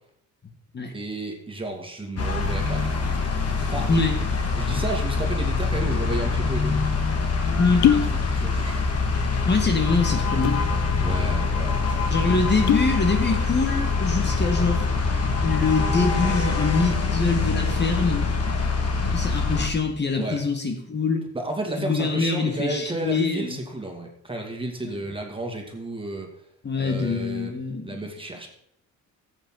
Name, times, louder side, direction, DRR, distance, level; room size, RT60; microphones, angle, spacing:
voice 1, 0.9-3.0 3.7-3.9 4.6-6.8 7.8-8.8 11.0-12.2 20.2-20.4 21.3-26.3 26.8-27.5 27.8-28.5, right 2 dB, 15° right, 1 dB, 2.5 m, -32 dB
sound 1, 2.2-19.7, left 4 dB, 50° left, 2.1 m, -24 dB
voice 2, 3.9-4.2 7.6-7.8 9.5-10.6 12.1-14.9 15.4-18.3 19.1-21.2 21.8-23.6 24.8-25.0 26.6-27.8, left 4 dB, 35° left, 4 dB, 1.8 m, -24 dB
sound 2, 6.7-6.8 7.6-8.2 8.4-9.1 9.4-9.5 10.2-10.7 11.2-11.3 11.5-11.7 12.4-13.0 13.4-13.8, left 9 dB, 70° left, 0.9 m, -22 dB
14.0 x 8.3 x 4.0 m, 0.72 s
cardioid pair, 90°, 30 cm